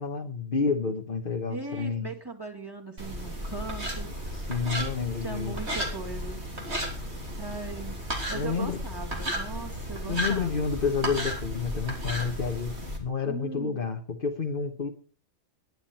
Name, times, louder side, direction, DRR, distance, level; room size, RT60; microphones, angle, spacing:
voice 1, 0.0-2.1 4.3-5.6 8.3-8.8 10.1-14.9, left 5 dB, 45° left, 1.5 m, -30 dB
voice 2, 1.5-4.4 5.2-6.4 6.8-7.0 7.4-8.0 8.3-10.7 13.2-13.8, right 3 dB, 20° right, 2.7 m, -39 dB
sound 1, 3.0-13.0, equal, 55° right, 3.7 m, -34 dB
22.0 x 10.0 x 4.4 m
omnidirectional pair, 1.3 m